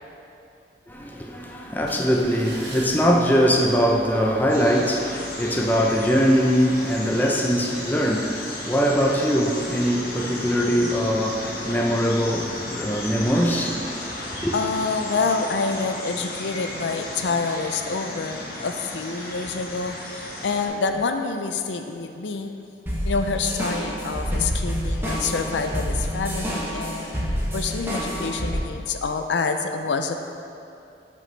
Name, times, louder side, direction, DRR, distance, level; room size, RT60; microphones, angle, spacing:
voice 1, 0.9-13.9 14.4-14.5, equal, 10° left, 0.6 m, -22 dB
sound 1, 1.7-14.2 14.7-14.8, right 1 dB, 80° right, 1.4 m, -46 dB
sound 2, 4.5-20.7, left 1 dB, 55° left, 1.3 m, -35 dB
voice 2, 14.5-22.5 23.0-27.1 27.5-30.1, left 4 dB, 90° left, 0.5 m, -27 dB
sound 3, 22.9-28.6, equal, 15° right, 1.1 m, -28 dB
11.0 x 5.3 x 3.3 m
head